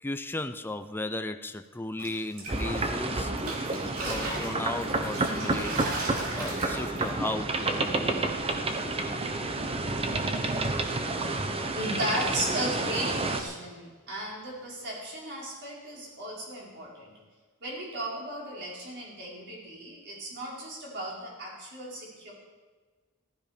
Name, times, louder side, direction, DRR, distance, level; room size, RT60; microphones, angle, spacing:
voice 1, 0.0-3.3 4.0-8.2, left 2 dB, 10° left, 9 dB, 0.5 m, -36 dB
sound 1, 2.0-3.0 3.4-7.1, right 2 dB, 70° right, 3.2 m, -37 dB
sound 2, 2.5-13.4, right 2 dB, 25° right, 0.9 m, -30 dB
voice 2, 11.7-17.1 17.6-22.3, right 1 dB, 55° right, -4 dB, 4.9 m, -35 dB
15.0 x 12.5 x 5.1 m, 1.4 s
head